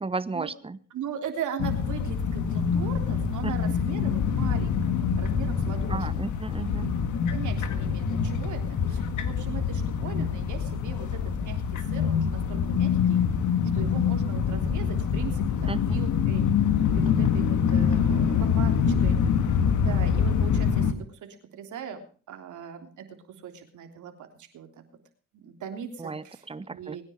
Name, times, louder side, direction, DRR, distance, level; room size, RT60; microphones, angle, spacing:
voice 1, 0.0-0.8 3.4-3.5 5.9-6.9 15.7-16.0 26.0-27.0, right 3 dB, 20° right, 16 dB, 1.0 m, -34 dB
voice 2, 0.9-6.3 7.1-13.2 13.7-16.4 16.9-19.2 19.8-22.0 22.3-23.1 23.4-24.3 24.5-24.8 25.3-27.0, right 8 dB, 75° right, 5 dB, 3.4 m, -39 dB
sound 1, 1.6-20.9, left 7 dB, 75° left, 1.9 m, -25 dB
23.0 x 10.0 x 5.1 m, 0.41 s
cardioid pair, 90°, 30 cm